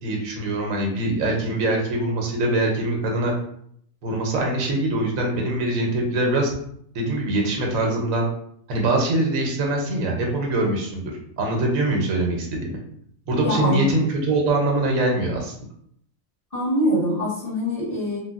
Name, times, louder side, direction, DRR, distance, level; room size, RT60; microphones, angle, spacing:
voice 1, 0.0-3.3 4.0-6.5 6.9-8.3 8.7-11.1 11.4-12.8 13.3-15.5, right 2 dB, 80° right, 0 dB, 1.1 m, -23 dB
voice 2, 13.4-13.9 16.5-18.2, left 1 dB, 30° left, -8 dB, 1.0 m, -23 dB
3.2 x 2.2 x 2.3 m, 0.68 s
omnidirectional pair, 1.4 m